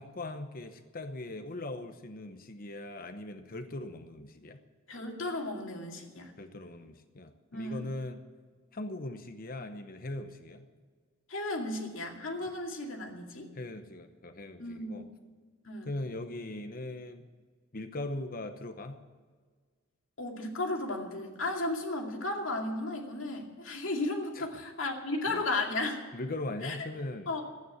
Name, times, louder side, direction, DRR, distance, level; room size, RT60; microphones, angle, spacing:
voice 1, 0.0-4.6 6.4-8.2 8.7-10.7 13.5-15.1 15.8-17.3 17.7-19.0 24.4-24.5 25.3-25.5 26.1-27.3, left 2 dB, 45° left, 8 dB, 0.9 m, -40 dB
voice 2, 4.9-6.3 7.5-7.8 11.3-13.5 14.6-15.0 15.6-15.9 20.2-26.0 26.6-26.8 27.3-27.4, left 2 dB, 70° left, 1 dB, 2.4 m, -34 dB
12.5 x 9.4 x 9.4 m, 1.5 s
head